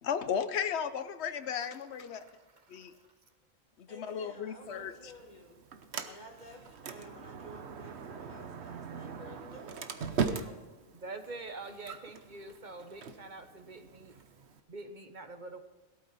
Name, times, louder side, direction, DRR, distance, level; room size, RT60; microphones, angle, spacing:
voice 1, 0.0-2.2 2.7-2.9 3.8-4.9, left 7 dB, 90° left, 10 dB, 1.0 m, -35 dB
voice 2, 1.6-3.1 10.9-14.3 14.7-15.6, right 3 dB, 50° right, 7 dB, 1.1 m, -46 dB
voice 3, 3.9-5.6 6.0-10.7, equal, 45° left, 2 dB, 2.2 m, -52 dB
Sliding door, 4.6-14.6, right 5 dB, 85° right, 1.2 m, -41 dB
18.0 x 12.5 x 4.2 m, 1.2 s
omnidirectional pair, 1.1 m